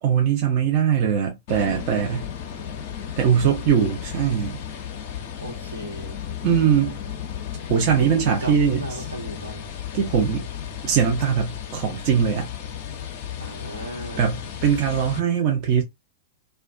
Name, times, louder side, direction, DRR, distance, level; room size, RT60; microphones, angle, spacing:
voice 1, 0.0-2.3 3.2-4.6 6.4-7.0 7.7-9.0 9.9-10.5 10.8-12.5 14.2-15.8, right 7 dB, 40° right, 0.6 m, -21 dB
sound 1, 1.5-15.2, left 9 dB, 45° left, 0.5 m, -34 dB
voice 2, 5.4-6.2 8.0-9.6 13.4-14.3, right 1 dB, 80° right, 1.1 m, -35 dB
2.3 x 2.2 x 2.4 m
figure-of-eight pair, 100°, 0 cm